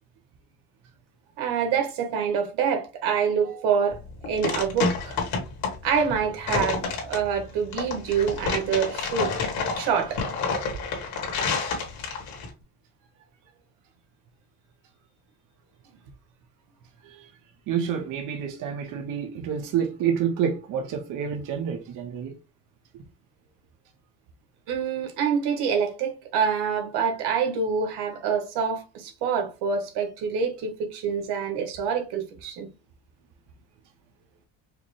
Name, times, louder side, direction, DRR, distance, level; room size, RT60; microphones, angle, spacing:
voice 1, 1.4-4.0 4.3-5.2 5.8-9.3 9.8-10.2 24.7-32.7, right 6 dB, 85° right, 1.2 m, -26 dB
sound 1, 3.9-12.5, left 4 dB, 65° left, 1.5 m, -29 dB
voice 2, 17.7-22.3, right 8 dB, 55° right, 0.8 m, -28 dB
4.9 x 2.1 x 3.1 m
cardioid pair, 150°, 39 cm